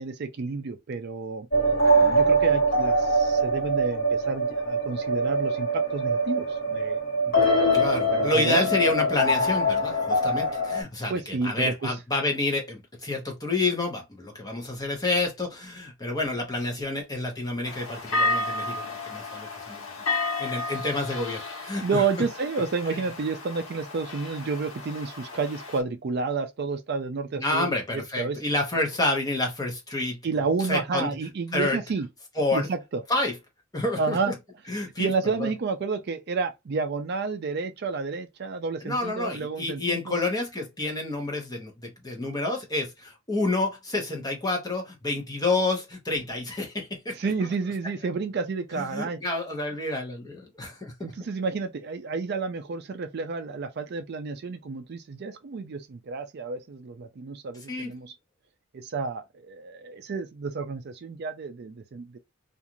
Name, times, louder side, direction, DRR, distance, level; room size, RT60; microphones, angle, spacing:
voice 1, 0.0-1.5 2.0-7.0 8.1-8.6 11.1-11.9 21.8-28.4 30.2-32.1 32.5-33.0 34.0-34.3 35.0-40.2 47.2-49.2 51.0-58.1 58.7-62.2, right 4 dB, 50° right, 0.4 m, -30 dB
sound 1, 1.5-10.8, right 1 dB, 50° left, 1.4 m, -23 dB
voice 2, 7.7-19.9 20.4-22.0 22.9-23.0 27.4-30.2 30.7-31.1 31.5-31.8 32.4-32.7 33.1-33.3 33.7-34.3 34.7-35.1 35.4-35.5 38.8-47.2 48.7-51.1 57.7-57.9, left 2 dB, 20° left, 0.9 m, -29 dB
sound 2, 17.6-25.8, left 2 dB, 80° left, 1.1 m, -32 dB
2.5 x 2.4 x 2.8 m
head